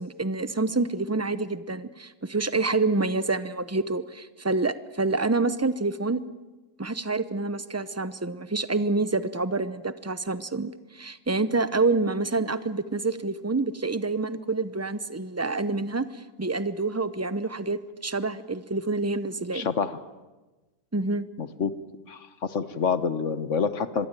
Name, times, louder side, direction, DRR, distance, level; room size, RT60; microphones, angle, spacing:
voice 1, 0.0-6.2 6.8-16.1 16.4-19.7 20.9-21.3, right 3 dB, 20° right, 14 dB, 0.5 m, -27 dB
voice 2, 19.5-20.0 21.4-21.8 22.1-24.1, left 6 dB, 55° left, 12 dB, 1.4 m, -27 dB
25.5 x 22.0 x 9.0 m, 1.2 s
omnidirectional pair, 1.6 m